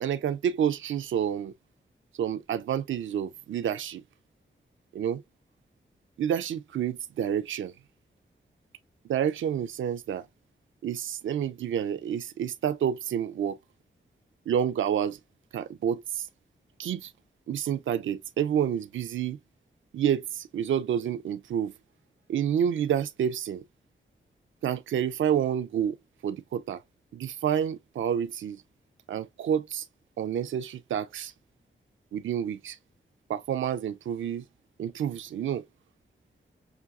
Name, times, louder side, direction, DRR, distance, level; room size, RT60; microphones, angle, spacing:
voice 1, 0.0-1.5 2.1-4.0 4.9-5.2 6.2-7.7 9.1-10.3 10.8-13.6 14.5-15.2 15.5-16.3 16.8-17.1 17.5-19.4 19.9-21.7 22.3-23.6 24.6-26.0 26.2-26.8 27.1-28.6 29.1-29.9 30.2-31.3 32.1-32.8 33.3-34.4 34.8-35.6, right 9 dB, 80° right, 0.4 m, -29 dB
5.9 x 2.7 x 2.3 m
cardioid pair, 70°, 20 cm